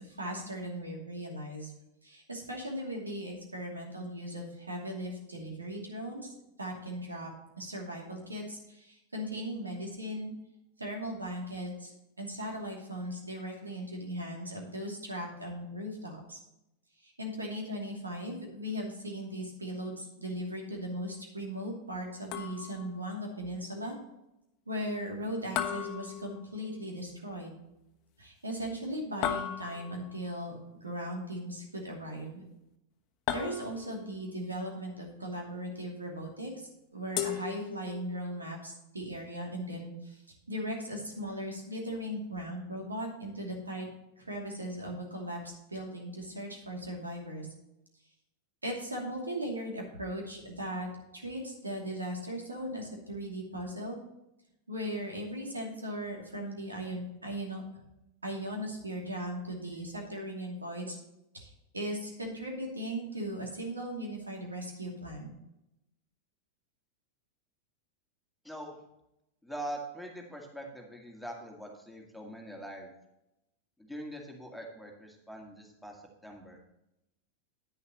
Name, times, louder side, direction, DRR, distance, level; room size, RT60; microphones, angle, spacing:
voice 1, 0.0-1.7 2.0-6.3 6.6-7.3 7.6-10.3 10.8-16.4 17.0-24.0 24.7-27.6 28.2-30.6 30.8-32.4 33.3-40.2 40.5-43.9 44.2-45.4 45.7-47.5 48.6-50.9 51.1-54.0 54.7-57.6 58.2-61.0 61.3-65.3, equal, 80° right, 0 dB, 2.7 m, -38 dB
sound 1, 22.3-22.9 25.6-26.8 29.2-30.1 33.3-34.1 37.2-38.2, left 10 dB, 40° left, 1.1 m, -36 dB
voice 2, 68.4-68.8 69.4-72.9 73.8-76.6, right 1 dB, ahead, 0 dB, 2.1 m, -43 dB
10.5 x 9.9 x 3.0 m, 0.87 s
figure-of-eight pair, 90°, 0 cm